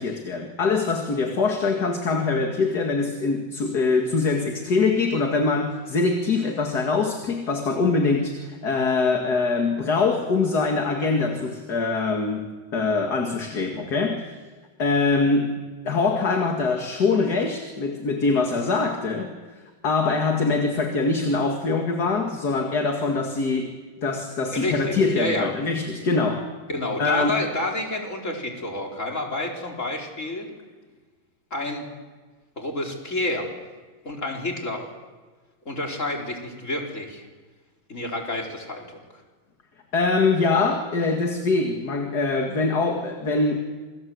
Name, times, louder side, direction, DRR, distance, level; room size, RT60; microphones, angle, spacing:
voice 1, 0.0-14.3 14.8-15.5 15.8-19.4 19.8-23.7 24.0-26.5 27.0-27.4 39.9-43.6, left 4 dB, 50° left, 3 dB, 2.6 m, -23 dB
voice 2, 24.5-25.5 26.7-30.5 31.5-31.9 32.6-33.5 34.0-34.9 35.6-37.2 37.9-39.0, left 1 dB, 35° left, 0 dB, 4.9 m, -29 dB
28.0 x 25.5 x 7.9 m, 1.3 s
omnidirectional pair, 2.2 m